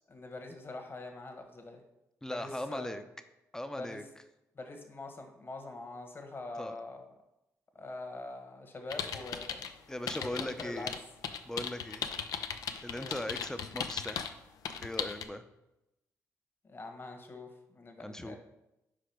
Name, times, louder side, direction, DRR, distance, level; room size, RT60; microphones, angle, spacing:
voice 1, 0.1-1.8 2.2-2.9 3.8-4.1 4.5-7.1 7.7-9.7 10.2-10.9 12.9-13.2 16.6-18.4, left 2 dB, 35° left, 4 dB, 1.4 m, -44 dB
voice 2, 2.2-3.0 3.5-4.0 6.6-6.8 9.9-10.9 11.4-12.1 12.8-14.2 14.8-15.4 18.0-18.4, left 1 dB, 10° left, 9 dB, 0.7 m, -39 dB
sound 1, 8.9-9.7 10.1-14.3 14.6-15.2, left 7 dB, 70° left, 0.6 m, -37 dB
5.1 x 4.8 x 6.0 m, 0.90 s
supercardioid pair, 65°, 6 cm